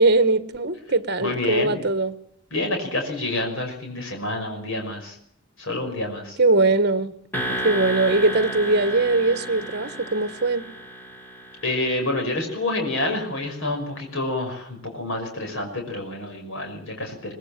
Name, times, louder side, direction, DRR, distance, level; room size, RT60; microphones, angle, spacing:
voice 1, 0.0-2.2 6.4-7.2 7.6-10.7, right 2 dB, 50° right, 1.4 m, -21 dB
voice 2, 1.2-1.8 2.5-5.2 5.6-6.4 7.3-7.4 11.6-17.3, left 2 dB, 65° left, 5.9 m, -28 dB
sound 1, 7.3-12.2, right 1 dB, 10° left, 3.2 m, -32 dB
22.0 x 20.5 x 7.4 m
head